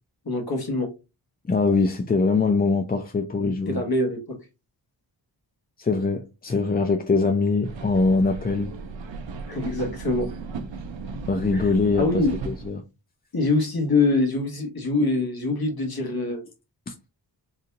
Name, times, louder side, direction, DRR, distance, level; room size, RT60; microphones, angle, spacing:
voice 1, 0.2-0.9 3.7-4.4 9.5-10.3 11.5-11.7 11.9-12.3 13.3-16.4, left 2 dB, 55° left, 1.4 m, -24 dB
voice 2, 1.5-3.8 5.8-8.7 11.3-12.8 16.9-17.0, left 3 dB, 25° left, 0.3 m, -23 dB
sound 1, 7.6-12.7, right 4 dB, 75° right, 0.6 m, -35 dB
3.9 x 2.7 x 2.7 m
wide cardioid pair, 90°, 45 cm